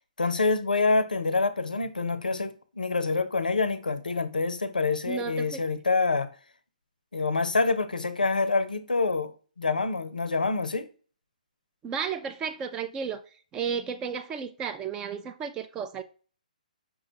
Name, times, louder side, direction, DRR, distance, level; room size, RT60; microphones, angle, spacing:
voice 1, 0.2-6.3 7.1-10.9, left 3 dB, 85° left, 0.5 m, -26 dB
voice 2, 5.1-5.6 11.8-13.2 13.5-16.0, right 6 dB, 15° right, 0.3 m, -33 dB
5.7 x 2.3 x 3.9 m
figure-of-eight pair, 135°, 4 cm